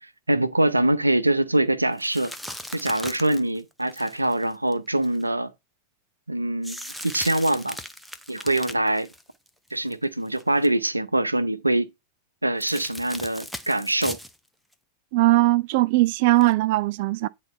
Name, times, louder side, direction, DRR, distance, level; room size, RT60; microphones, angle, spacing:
voice 1, 0.0-2.3 2.7-5.5 6.3-7.8 8.3-9.1 9.7-11.9 12.4-14.2, right 1 dB, 85° right, 0.7 m, -24 dB
sound 1, 2.0-5.2 6.6-9.9 10.3-10.7 12.6-14.4 14.7-14.8 16.4-16.5, equal, ahead, 0.8 m, -38 dB
voice 2, 15.1-17.3, right 18 dB, 50° right, 0.3 m, -20 dB
9.8 x 4.0 x 4.3 m
figure-of-eight pair, 90°, 0 cm